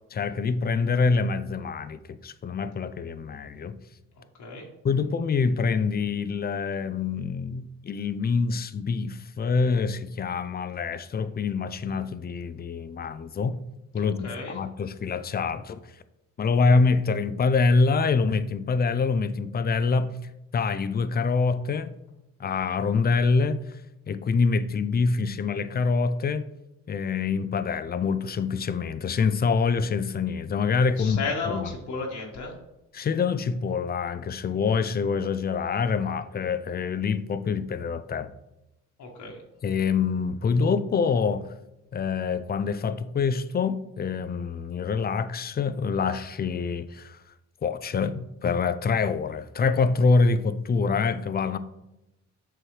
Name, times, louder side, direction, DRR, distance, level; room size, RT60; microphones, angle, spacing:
voice 1, 0.1-3.8 4.8-13.6 13.9-15.8 16.4-20.2 20.5-21.9 22.4-23.6 24.1-26.4 26.9-31.7 32.9-38.3 39.6-41.5 41.9-47.2 47.6-51.6, left 4 dB, 30° left, 0.5 m, -25 dB
voice 2, 14.0-14.6 31.0-32.6 39.0-39.4, left 4 dB, 70° left, 1.5 m, -33 dB
7.6 x 6.2 x 3.2 m
cardioid pair, 90°, 30 cm